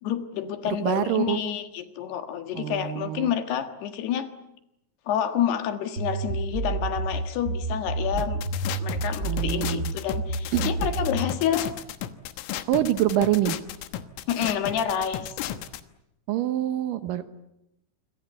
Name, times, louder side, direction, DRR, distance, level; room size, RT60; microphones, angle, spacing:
voice 1, 0.0-4.3 5.1-11.7 13.2-13.3 14.3-15.3, left 9 dB, 65° left, 8 dB, 3.3 m, -28 dB
voice 2, 0.7-1.4 2.5-3.3 9.3-9.9 10.5-10.7 12.7-13.6 16.3-17.3, right 13 dB, 80° right, 11 dB, 1.9 m, -25 dB
sound 1, 6.0-11.3, right 3 dB, 55° right, 1.0 m, -29 dB
sound 2, 8.2-15.8, left 12 dB, 90° left, 3.8 m, -34 dB
27.5 x 24.5 x 8.2 m, 0.84 s
omnidirectional pair, 5.6 m